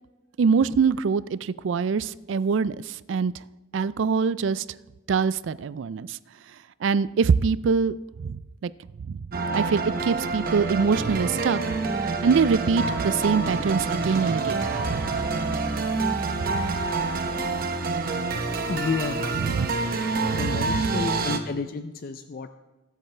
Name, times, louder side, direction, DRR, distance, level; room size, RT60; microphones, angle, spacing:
voice 1, 0.4-3.3 3.7-4.6 5.1-6.2 6.8-8.0 8.2-8.7 9.0-9.2 9.5-11.6 12.2-15.1 16.4-16.7 19.4-19.7 20.3-20.8, right 5 dB, 75° right, 18 dB, 0.4 m, -24 dB
sound 1, 9.3-21.4, right 3 dB, 50° right, 1.0 m, -27 dB
voice 2, 18.7-19.4 20.4-22.5, left 4 dB, 50° left, 9 dB, 0.4 m, -31 dB
21.0 x 8.5 x 3.3 m, 1.1 s
head